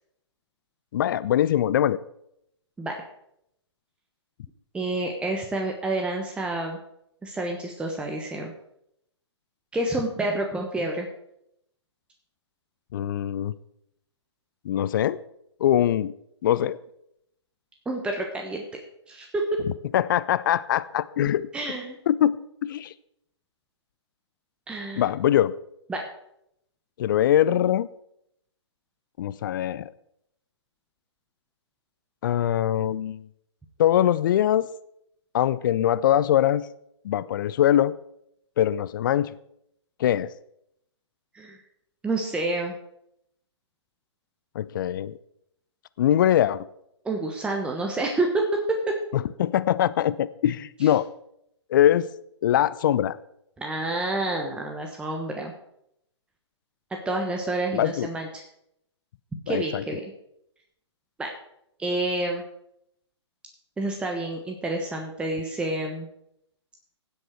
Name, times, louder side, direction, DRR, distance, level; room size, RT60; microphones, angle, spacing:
voice 1, 0.9-2.0 12.9-13.5 14.6-15.2 15.6-16.1 16.4-16.8 19.9-21.5 22.1-22.9 25.0-25.5 27.0-27.9 29.2-29.9 32.2-33.2 33.8-34.7 35.3-36.7 37.0-37.9 38.6-39.3 40.0-40.3 44.5-45.2 46.0-46.7 49.1-51.1 51.7-52.1 52.4-53.2 57.7-58.1 59.5-59.8, left 11 dB, 45° left, 17 dB, 0.5 m, -22 dB
voice 2, 4.7-6.8 7.2-8.5 9.7-11.1 17.8-18.8 19.1-19.6 21.5-22.0 24.7-25.0 25.9-26.0 41.3-41.6 42.0-42.8 47.0-49.0 53.6-55.5 57.0-58.4 59.5-60.1 61.2-61.3 61.8-62.4 63.8-66.1, right 2 dB, 5° right, 1 dB, 1.2 m, -28 dB
16.0 x 7.9 x 4.6 m, 0.76 s
figure-of-eight pair, 130°, 15 cm